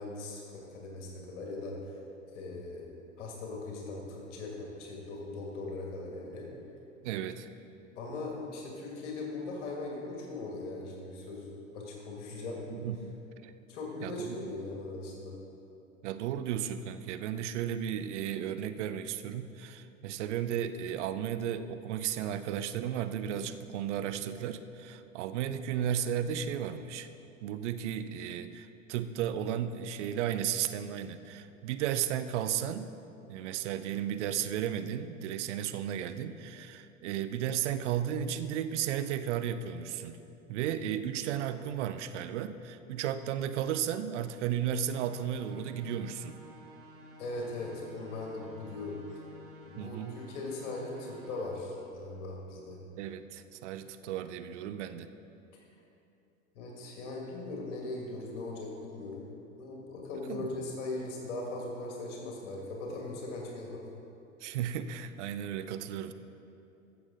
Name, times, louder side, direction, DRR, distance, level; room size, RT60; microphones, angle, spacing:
voice 1, 0.0-2.0 2.3-2.8 3.2-6.5 8.0-11.5 11.7-12.6 13.7-15.4 47.2-49.2 49.7-52.8 55.5-55.7 56.6-59.3 59.6-63.9, left 2 dB, 65° left, -1 dB, 2.0 m, -39 dB
voice 2, 7.0-7.5 12.7-13.2 13.4-13.5 14.0-14.5 16.0-27.1 27.4-32.9 33.2-40.2 40.5-46.4 49.8-50.2 53.0-55.1 60.3-60.4 64.4-66.1, right 9 dB, 60° right, 11 dB, 0.6 m, -34 dB
sound 1, 44.9-51.5, equal, 35° right, 1.5 m, -52 dB
14.5 x 7.0 x 3.8 m, 2.8 s
figure-of-eight pair, 80°, 39 cm